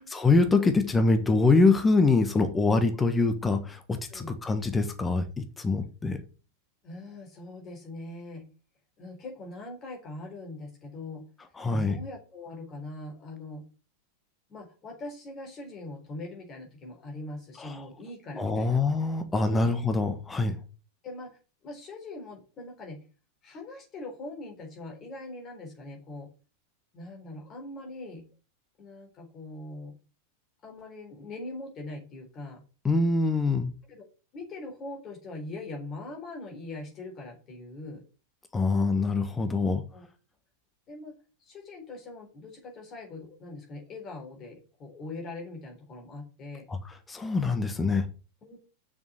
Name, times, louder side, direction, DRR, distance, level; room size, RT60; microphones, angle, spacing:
voice 1, 0.0-6.2 11.6-12.0 17.6-17.7 18.4-20.6 32.8-33.7 38.5-39.8 46.7-46.8 47.1-48.1, left 3 dB, 15° left, 8 dB, 1.3 m, -24 dB
voice 2, 6.8-8.5 9.0-11.3 11.7-13.7 14.5-18.8 19.4-19.7 21.0-23.0 23.4-26.3 26.9-28.2 28.8-30.0 30.6-32.6 33.9-34.1 34.3-38.1 39.5-40.1 40.9-46.7 48.4-48.7, left 2 dB, 30° left, 1 dB, 4.1 m, -42 dB
6.9 x 6.4 x 6.9 m, 0.35 s
figure-of-eight pair, 90°, 0 cm